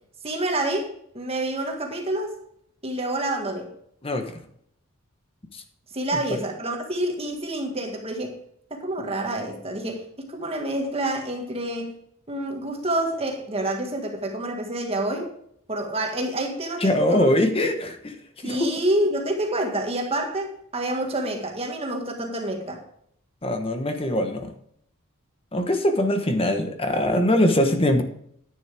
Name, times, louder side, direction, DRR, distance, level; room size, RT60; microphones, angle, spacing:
voice 1, 0.2-2.4 2.8-3.7 5.9-8.4 8.7-12.0 12.3-15.3 15.7-17.6 18.4-22.8, right 1 dB, 30° right, 2 dB, 1.7 m, -28 dB
voice 2, 16.8-18.1 18.4-18.7 23.4-24.5 25.5-28.0, left 1 dB, 25° left, 6 dB, 1.1 m, -22 dB
10.5 x 9.6 x 3.5 m, 0.68 s
head